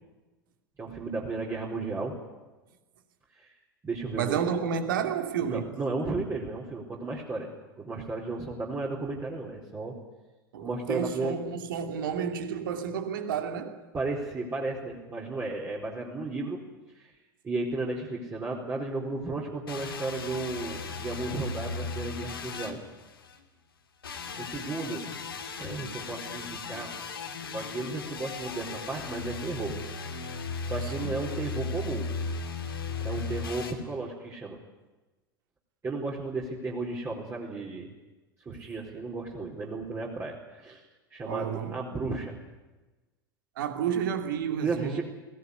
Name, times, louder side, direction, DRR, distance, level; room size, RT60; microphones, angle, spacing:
voice 1, 0.8-2.2 3.4-3.5 3.8-4.4 5.4-7.5 7.8-10.0 10.6-11.4 13.9-16.6 16.9-17.1 17.4-22.8 24.4-25.1 25.6-26.9 27.5-29.8 30.6-32.1 33.0-34.6 35.8-37.9 38.5-40.8 41.1-42.3 44.6-45.0, right 3 dB, 20° right, 4.3 m, -34 dB
voice 2, 4.2-5.7 10.5-13.8 30.8-31.2 41.3-41.8 43.6-45.0, right 7 dB, 65° right, 2.7 m, -31 dB
sound 1, 19.7-23.4 24.0-33.7, left 4 dB, 75° left, 2.5 m, -36 dB
21.0 x 18.0 x 9.8 m
figure-of-eight pair, 85°, 12 cm